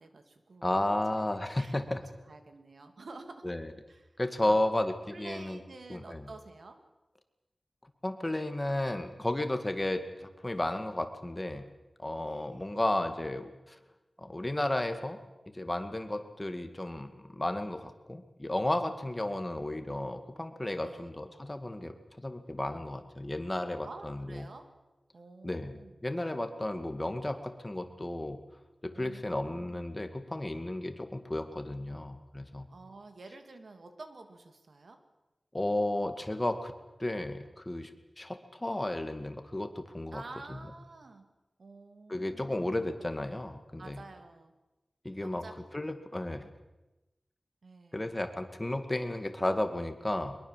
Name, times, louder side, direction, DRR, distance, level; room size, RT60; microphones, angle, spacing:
voice 1, 0.0-0.8 1.2-1.3 1.6-3.5 3.9-4.6 4.8-6.8 12.2-12.7 20.8-21.1 23.8-24.7 25.1-26.0 28.9-29.8 32.7-35.0 40.1-41.3 41.6-42.9 43.8-44.5 45.2-45.9 47.6-48.2, right 3 dB, 80° right, 7 dB, 2.8 m, -50 dB
voice 2, 0.6-2.0 3.4-3.7 4.2-5.6 5.9-6.2 8.0-11.7 12.0-13.8 14.2-15.2 15.5-22.0 22.2-24.5 25.4-25.7 26.0-28.4 28.8-32.7 35.5-36.7 37.0-37.9 38.2-40.2 42.1-44.0 45.0-45.4 45.7-46.5 47.9-50.4, left 1 dB, 20° left, 8 dB, 2.3 m, -33 dB
23.5 x 22.0 x 7.6 m, 1.0 s
wide cardioid pair, 80°, 0 cm